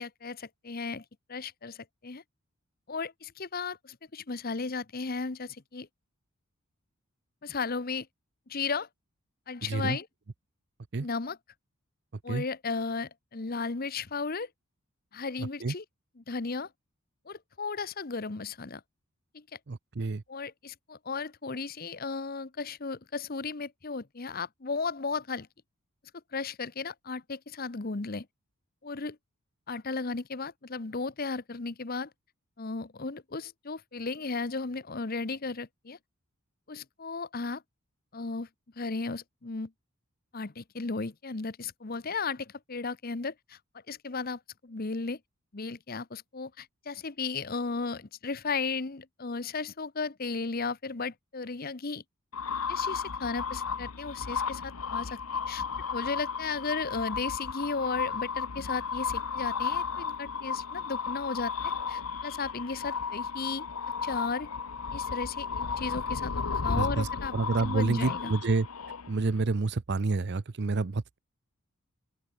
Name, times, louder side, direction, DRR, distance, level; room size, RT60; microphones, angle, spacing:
voice 1, 0.0-2.2 2.9-5.9 7.4-8.1 8.5-8.9 9.5-10.1 11.0-11.4 12.2-14.5 15.1-15.8 16.2-16.7 17.3-18.8 19.3-19.6 20.3-25.5 26.3-28.3 28.8-29.2 29.7-32.1 32.6-36.0 36.7-37.6 38.1-38.5 38.8-39.7 40.3-43.6 43.9-45.2 45.5-52.0 52.7-55.2 55.5-55.6 55.9-63.7 64.0-64.5 64.9-68.3, left 4 dB, 40° left, 0.9 m, -35 dB
voice 2, 9.6-10.0 10.9-11.1 12.3-12.4 15.4-15.7 19.7-20.2 66.7-68.7 69.1-71.2, right 3 dB, 50° right, 0.6 m, -29 dB
sound 1, 52.3-69.4, left 5 dB, 80° left, 1.1 m, -34 dB
open air
head